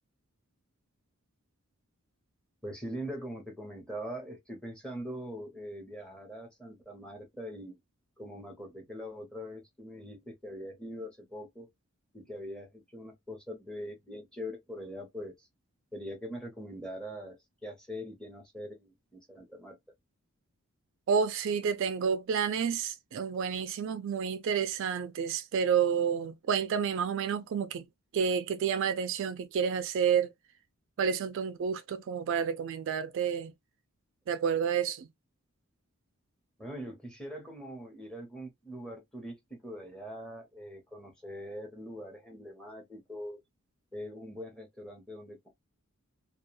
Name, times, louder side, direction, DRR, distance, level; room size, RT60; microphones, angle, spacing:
voice 1, 2.6-7.8 8.2-11.7 12.1-15.5 15.9-17.4 17.6-19.8 36.6-43.4 43.9-45.5, equal, 5° left, 0.8 m, -42 dB
voice 2, 21.1-27.9 28.1-30.3 31.0-33.5 34.3-35.1, right 7 dB, 60° right, 0.3 m, -30 dB
2.3 x 2.2 x 2.9 m
head